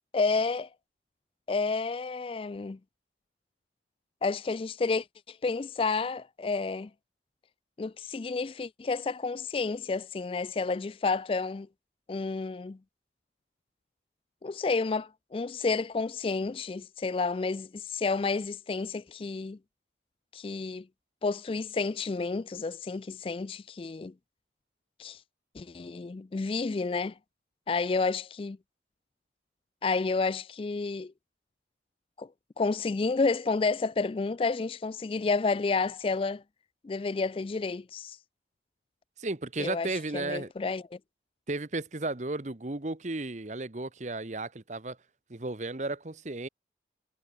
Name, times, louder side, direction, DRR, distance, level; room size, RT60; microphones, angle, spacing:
voice 1, 0.1-0.7 1.5-2.8 4.2-6.9 7.8-11.7 12.1-12.8 14.4-19.6 20.3-20.9 21.2-24.1 25.0-25.2 25.6-27.1 27.7-28.6 29.8-31.1 32.2-32.3 32.6-36.4 36.8-38.2 39.6-41.0, left 4 dB, 30° left, 0.3 m, -30 dB
voice 2, 39.2-40.5 41.5-45.0 45.3-46.5, right 2 dB, 40° right, 1.0 m, -34 dB
head